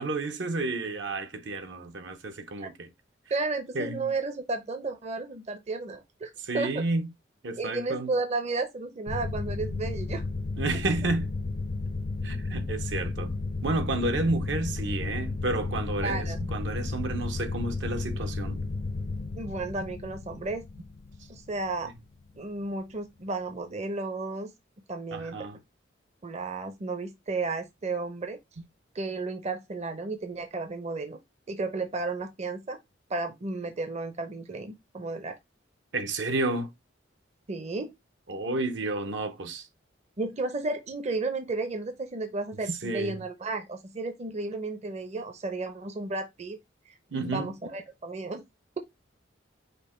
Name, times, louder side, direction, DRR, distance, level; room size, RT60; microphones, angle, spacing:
voice 1, 0.0-2.9 3.7-4.1 6.5-7.0 7.4-8.1 10.6-11.3 12.2-13.3 13.6-18.6 25.1-25.6 35.9-36.7 38.3-39.7 42.7-43.2 47.1-47.5, right 2 dB, 65° right, 0.7 m, -31 dB
voice 2, 3.3-6.8 7.6-10.2 16.0-16.4 19.4-20.6 21.3-21.9 22.3-24.5 24.9-25.5 26.2-28.4 28.9-31.2 31.5-32.8 33.1-35.4 37.5-37.9 40.2-46.6 46.9-48.4, right 3 dB, 35° right, 0.6 m, -33 dB
sound 1, 9.1-22.3, left 3 dB, 50° left, 0.4 m, -33 dB
5.2 x 2.1 x 4.2 m
head